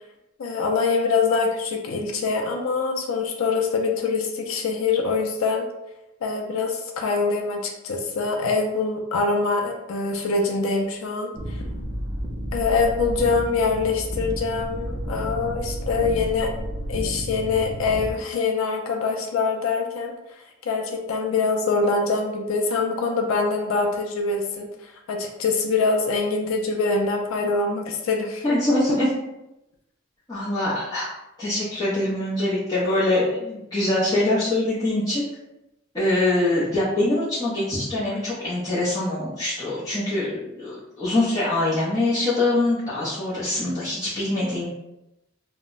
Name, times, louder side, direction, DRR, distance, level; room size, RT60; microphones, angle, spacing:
voice 1, 0.4-5.7 6.2-11.6 12.5-16.5 16.9-28.6, left 4 dB, 85° left, 2 dB, 0.4 m, -24 dB
sound 1, 11.3-18.1, equal, 20° right, 0.5 m, -31 dB
voice 2, 28.4-29.1 30.3-31.1 31.4-35.2 35.9-44.7, left 1 dB, 20° left, -12 dB, 0.6 m, -23 dB
2.1 x 2.0 x 3.7 m, 0.92 s
head